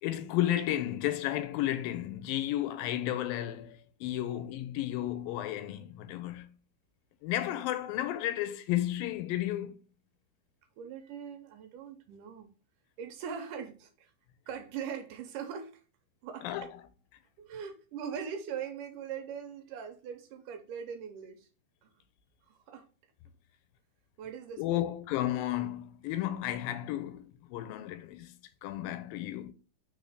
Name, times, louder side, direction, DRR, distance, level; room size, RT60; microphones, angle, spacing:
voice 1, 0.0-6.6 7.2-9.8 16.4-16.7 24.6-29.5, left 13 dB, 90° left, 2.4 m, -33 dB
voice 2, 10.8-12.5 13.0-14.1 14.5-15.8 16.2-16.5 17.4-21.5 21.8-21.9 22.5-22.8 24.2-24.9, right 7 dB, 75° right, 2.2 m, -41 dB
5.4 x 4.1 x 4.8 m
omnidirectional pair, 4.1 m